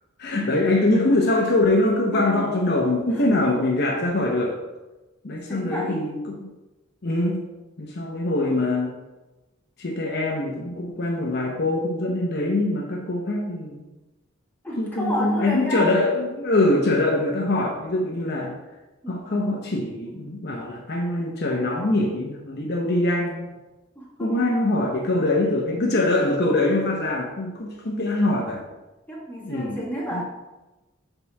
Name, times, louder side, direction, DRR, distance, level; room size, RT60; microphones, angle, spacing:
voice 1, 0.2-4.6 5.2-6.5 7.0-7.4 7.8-8.9 9.8-13.8 14.8-18.6 19.1-23.5 24.2-28.6 29.4-29.8 30.1-30.2, left 2 dB, 55° left, -1 dB, 0.9 m, -23 dB
voice 2, 2.1-2.4 3.1-3.2 5.5-6.0 14.6-15.9 19.0-19.1 20.0-20.1 23.9-24.5 29.1-30.2, equal, 10° left, -6 dB, 1.7 m, -31 dB
5.4 x 4.1 x 5.9 m, 1.1 s
head